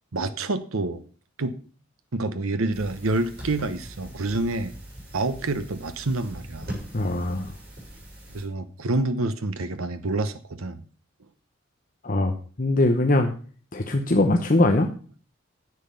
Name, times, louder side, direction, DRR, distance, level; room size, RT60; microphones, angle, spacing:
voice 1, 0.1-1.0 1.4-1.6 2.1-4.7 5.1-6.7 8.3-10.8, right 2 dB, 85° right, 11 dB, 0.9 m, -27 dB
sound 1, 2.7-8.5, equal, 50° right, 6.4 m, -41 dB
voice 2, 6.9-7.5 12.0-13.3 13.7-14.9, left 2 dB, 40° left, 4 dB, 0.9 m, -21 dB
10.5 x 7.5 x 6.8 m, 0.41 s
head